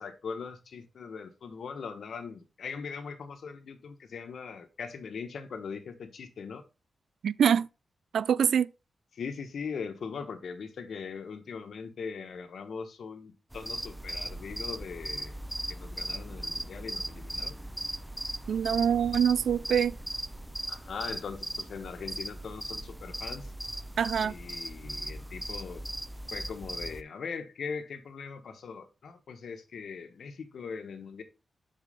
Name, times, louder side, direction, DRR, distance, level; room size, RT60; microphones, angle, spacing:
voice 1, 0.0-6.6 9.1-15.3 15.7-17.6 20.7-23.5 24.2-25.8 26.3-31.2, left 5 dB, 75° left, 1.2 m, -40 dB
voice 2, 7.2-7.7 8.1-8.7 18.5-20.0 24.0-24.3, right 8 dB, 80° right, 0.3 m, -25 dB
sound 1, 13.5-27.0, right 1 dB, 5° right, 0.5 m, -38 dB
7.6 x 4.8 x 3.5 m
wide cardioid pair, 105°, 0 cm